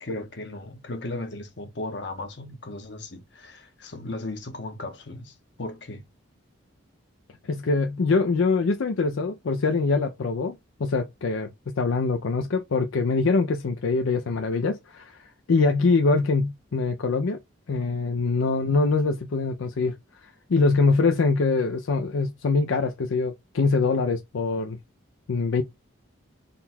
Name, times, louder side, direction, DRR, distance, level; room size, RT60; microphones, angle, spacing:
voice 1, 0.0-6.0, left 2 dB, 60° left, 1.0 m, -36 dB
voice 2, 7.5-15.2 15.5-17.4 17.7-19.9 20.5-24.8 25.3-25.6, left 4 dB, 80° left, 0.5 m, -24 dB
3.9 x 2.3 x 4.1 m
head